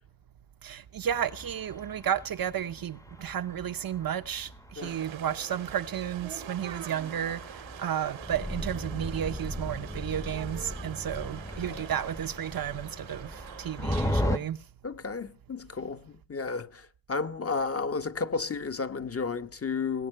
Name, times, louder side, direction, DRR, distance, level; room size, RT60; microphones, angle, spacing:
voice 1, 0.6-14.6, right 9 dB, 50° right, 0.8 m, -33 dB
sound 1, 1.1-14.4, left 1 dB, 5° left, 1.0 m, -37 dB
sound 2, 4.8-14.2, right 10 dB, 90° right, 1.9 m, -45 dB
voice 2, 14.8-20.1, left 4 dB, 30° left, 1.1 m, -33 dB
19.5 x 8.7 x 6.5 m
cardioid pair, 70°, 46 cm